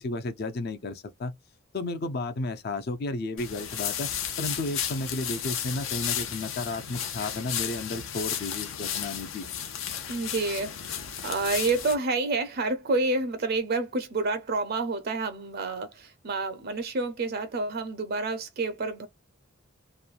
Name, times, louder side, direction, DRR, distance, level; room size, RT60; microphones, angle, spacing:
voice 1, 0.0-1.3 1.7-4.1 4.4-9.5, left 2 dB, 50° left, 0.5 m, -33 dB
sound 1, 3.4-11.9, left 9 dB, 80° left, 0.7 m, -33 dB
voice 2, 10.1-19.1, right 3 dB, 50° right, 0.5 m, -29 dB
3.1 x 2.2 x 2.3 m
head